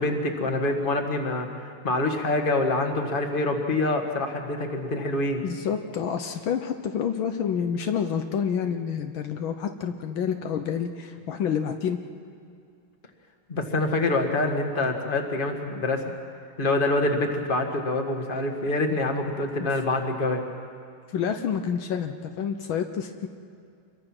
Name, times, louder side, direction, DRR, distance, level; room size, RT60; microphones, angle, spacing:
voice 1, 0.0-5.4 13.5-16.1 16.6-20.4, left 2 dB, 25° left, 4 dB, 1.8 m, -26 dB
voice 2, 5.4-12.0 19.6-19.7 21.1-23.3, left 7 dB, 70° left, 6 dB, 1.7 m, -28 dB
28.0 x 22.5 x 6.1 m, 2.3 s
omnidirectional pair, 2.3 m